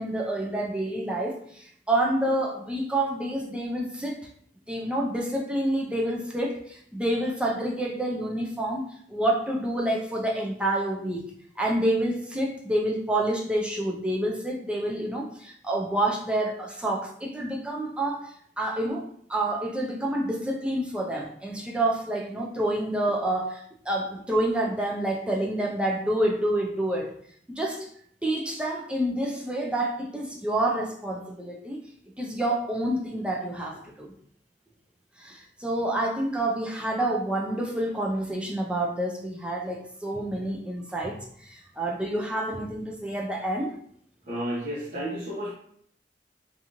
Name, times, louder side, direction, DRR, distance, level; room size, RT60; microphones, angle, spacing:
voice 1, 0.0-4.3 4.7-11.2 11.6-27.1 27.5-27.9 28.2-31.8 32.2-34.1 35.2-43.8, right 1 dB, 5° right, -1 dB, 0.3 m, -28 dB
voice 2, 44.2-45.5, equal, 45° right, -8 dB, 0.7 m, -32 dB
2.9 x 2.5 x 2.5 m, 0.63 s
head